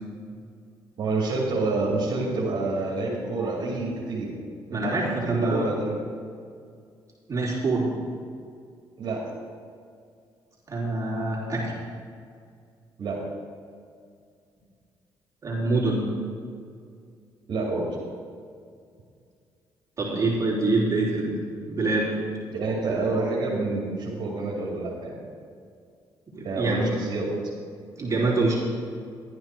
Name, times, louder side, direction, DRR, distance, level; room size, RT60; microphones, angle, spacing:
voice 1, 1.0-4.3 4.7-5.0 5.2-6.0 9.0-9.2 13.0-13.2 17.5-17.9 22.5-25.3 26.4-27.3, right 3 dB, 65° right, -6 dB, 2.5 m, -28 dB
voice 2, 4.7-5.7 7.3-7.9 10.7-11.7 15.4-16.1 20.0-21.4 21.7-22.1 26.3-26.9 28.0-28.6, right 2 dB, 40° right, -5 dB, 3.5 m, -25 dB
12.0 x 9.6 x 4.6 m, 2.2 s
cardioid pair, 80°, 9 cm